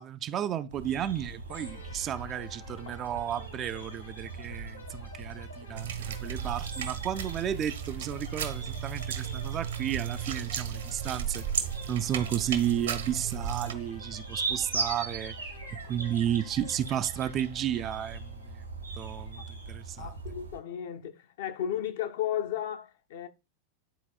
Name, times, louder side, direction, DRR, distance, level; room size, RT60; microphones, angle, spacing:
voice 1, 0.0-11.5 11.9-15.4 15.7-18.5 19.0-20.1, right 10 dB, 30° right, 0.4 m, -33 dB
sound 1, 0.7-20.6, right 3 dB, 85° right, 1.5 m, -40 dB
sound 2, 1.5-19.1, left 3 dB, 85° left, 1.9 m, -52 dB
sound 3, 5.8-13.7, right 8 dB, 65° right, 0.9 m, -35 dB
voice 2, 20.0-23.3, left 10 dB, 55° left, 0.7 m, -34 dB
11.0 x 4.1 x 2.2 m
figure-of-eight pair, 90°, 0 cm